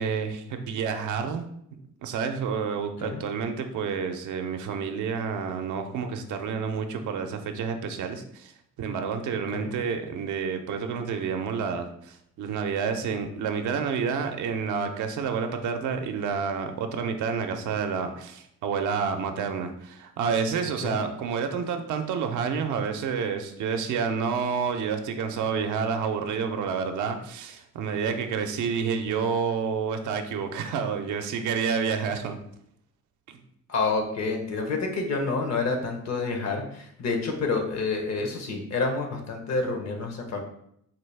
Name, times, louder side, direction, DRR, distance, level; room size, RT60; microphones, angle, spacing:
voice 1, 0.0-1.5 2.0-8.5 8.8-32.4 33.3-33.4, right 6 dB, 75° right, 6 dB, 0.6 m, -29 dB
voice 2, 33.7-40.4, left 3 dB, 60° left, 3 dB, 0.9 m, -28 dB
4.0 x 2.3 x 3.3 m, 0.72 s
cardioid pair, 75°, 31 cm